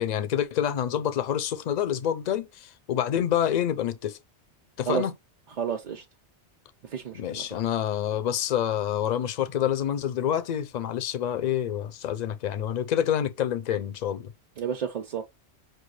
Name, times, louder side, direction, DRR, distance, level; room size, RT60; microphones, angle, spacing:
voice 1, 0.0-4.2 4.8-5.1 7.1-14.3, left 10 dB, 60° left, 0.4 m, -27 dB
voice 2, 5.6-6.0 6.8-7.5 14.6-15.2, right 7 dB, 50° right, 0.5 m, -31 dB
6.0 x 2.3 x 3.1 m
omnidirectional pair, 1.2 m